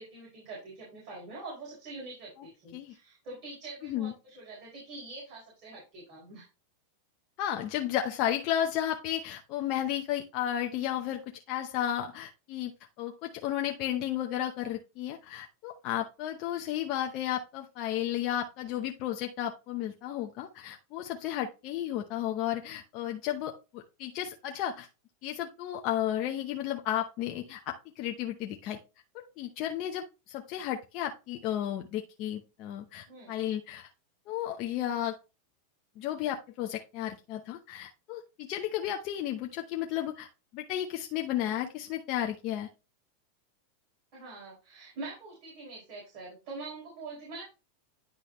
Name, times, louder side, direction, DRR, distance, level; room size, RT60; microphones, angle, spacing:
voice 1, 0.0-6.5 33.1-33.3 44.1-47.4, right 3 dB, 55° right, -5 dB, 4.1 m, -44 dB
voice 2, 3.8-4.1 7.4-11.2 11.5-12.7 13.0-24.9 25.2-28.8 29.1-33.9 34.3-35.2 36.0-40.3 40.5-42.7, left 11 dB, 50° left, 3 dB, 0.8 m, -33 dB
10.0 x 3.9 x 3.1 m, 0.29 s
hypercardioid pair, 115°, 0 cm